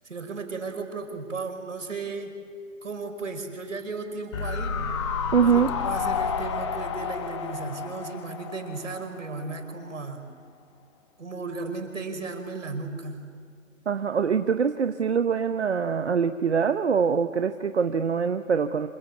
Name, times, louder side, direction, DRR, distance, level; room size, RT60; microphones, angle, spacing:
voice 1, 0.0-2.3 2.8-4.8 5.4-5.5 5.8-10.2 11.2-13.3, right 4 dB, 70° right, 5 dB, 5.5 m, -35 dB
sound 1, 4.3-9.6 9.9-10.0, left 6 dB, 20° left, 1.3 m, -31 dB
voice 2, 5.3-5.7 13.9-18.9, right 6 dB, 55° right, 8 dB, 1.1 m, -24 dB
27.0 x 24.5 x 8.4 m, 2.1 s
hypercardioid pair, 165°, 39 cm